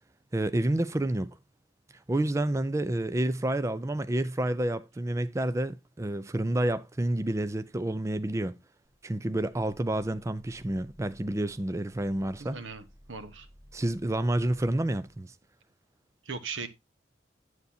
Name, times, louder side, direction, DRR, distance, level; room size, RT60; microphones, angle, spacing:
voice 1, 0.3-1.4 2.1-8.6 9.0-12.6 13.7-15.3, right 1 dB, 15° right, 0.4 m, -29 dB
Growling, 8.8-15.2, equal, ahead, 4.6 m, -57 dB
voice 2, 12.4-13.5 16.2-16.7, right 4 dB, 90° right, 1.1 m, -38 dB
9.4 x 8.0 x 2.7 m
head